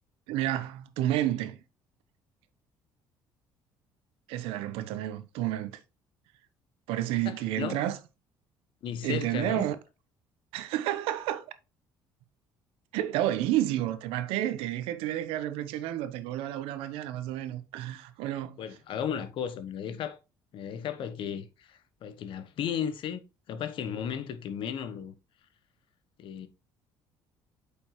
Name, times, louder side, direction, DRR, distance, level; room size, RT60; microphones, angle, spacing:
voice 1, 0.3-1.6 4.3-5.8 6.9-8.0 9.0-9.8 10.5-11.5 12.9-18.6, right 13 dB, 80° right, 0.9 m, -30 dB
voice 2, 7.2-7.8 8.8-9.7 18.6-20.2 20.5-23.2 23.5-25.1 26.2-26.5, left 8 dB, 65° left, 1.1 m, -35 dB
8.6 x 5.3 x 3.1 m
supercardioid pair, 75°, 9 cm